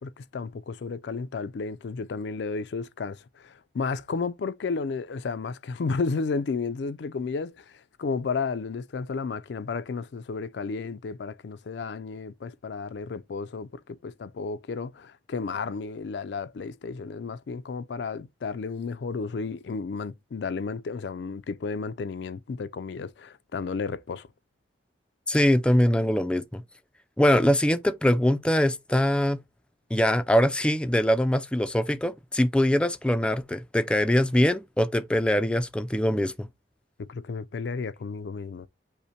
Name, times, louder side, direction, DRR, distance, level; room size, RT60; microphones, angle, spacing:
voice 1, 0.0-7.6 8.0-24.3 37.0-38.7, left 4 dB, 70° left, 0.4 m, -32 dB
voice 2, 25.3-26.6 27.2-29.4 29.9-36.5, left 1 dB, 5° left, 0.3 m, -23 dB
5.5 x 2.1 x 4.3 m
head